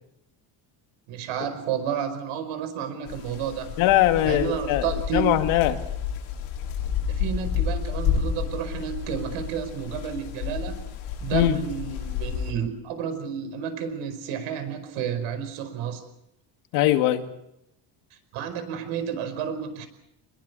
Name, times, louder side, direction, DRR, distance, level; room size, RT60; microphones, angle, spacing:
voice 1, 1.1-3.7 4.2-5.2 7.1-10.8 11.2-16.0 18.3-19.9, right 8 dB, 80° right, 5.1 m, -31 dB
sound 1, 3.1-12.5, left 7 dB, 70° left, 6.7 m, -30 dB
voice 2, 3.8-5.8 11.3-11.6 16.7-17.3, left 14 dB, 85° left, 2.3 m, -21 dB
25.0 x 22.0 x 6.9 m
cardioid pair, 170°, 49 cm